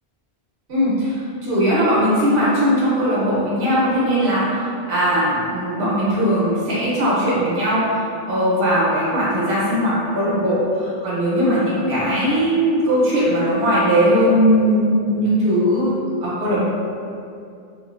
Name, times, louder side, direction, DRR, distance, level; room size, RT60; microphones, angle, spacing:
voice 1, 0.7-1.2 1.4-15.9 16.2-16.7, equal, 65° right, -9 dB, 1.0 m, -19 dB
2.9 x 2.2 x 2.4 m, 2.5 s
omnidirectional pair, 1.0 m